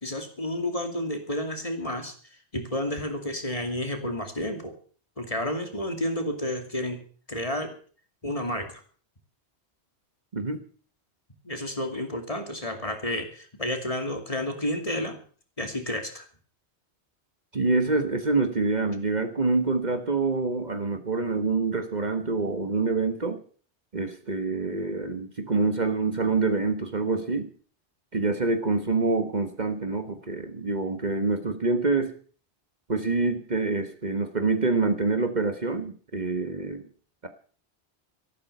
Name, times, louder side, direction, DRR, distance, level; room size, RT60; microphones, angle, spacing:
voice 1, 0.0-2.1 2.5-4.8 5.2-7.0 7.3-7.8 8.2-8.7 11.4-15.2 15.6-16.3, left 1 dB, 30° left, 6 dB, 2.6 m, -31 dB
voice 2, 17.5-23.4 23.9-27.5 28.1-32.1 32.9-36.8, right 3 dB, 40° right, 7 dB, 1.4 m, -26 dB
13.5 x 12.5 x 6.8 m, 0.42 s
omnidirectional pair, 1.1 m